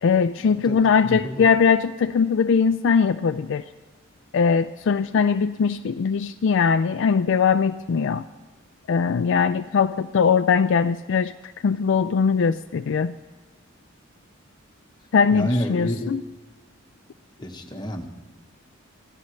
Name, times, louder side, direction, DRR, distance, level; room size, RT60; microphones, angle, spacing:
voice 1, 0.0-3.6 4.3-8.2 8.9-11.3 11.6-13.1 15.1-16.2, left 6 dB, 60° left, 11 dB, 0.4 m, -20 dB
voice 2, 1.1-1.4 15.3-16.1 17.4-18.1, equal, 20° left, 3 dB, 1.2 m, -28 dB
24.5 x 15.0 x 3.2 m, 1.3 s
head